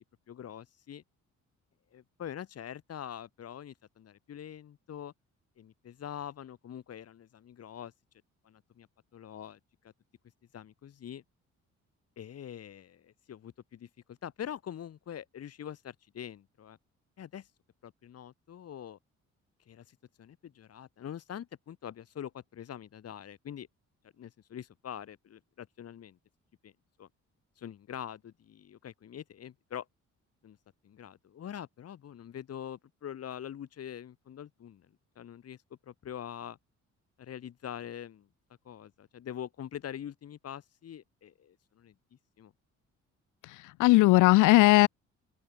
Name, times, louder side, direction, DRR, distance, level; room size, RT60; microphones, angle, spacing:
voice 1, 0.3-1.0 1.9-5.1 5.6-7.9 8.4-9.6 9.8-9.9 10.5-11.2 12.2-16.8 17.2-17.5 17.8-19.0 19.7-23.7 24.2-26.2 26.6-26.7 27.0-27.1 27.6-29.9 30.4-30.6 30.8-34.9 35.1-35.6 35.8-36.6 37.2-38.3 38.6-41.9 42.4-42.5, left 9 dB, 55° left, 1.5 m, -44 dB
voice 2, 43.5-44.9, left 20 dB, 90° left, 0.5 m, -19 dB
open air
cardioid pair, 90°, 30 cm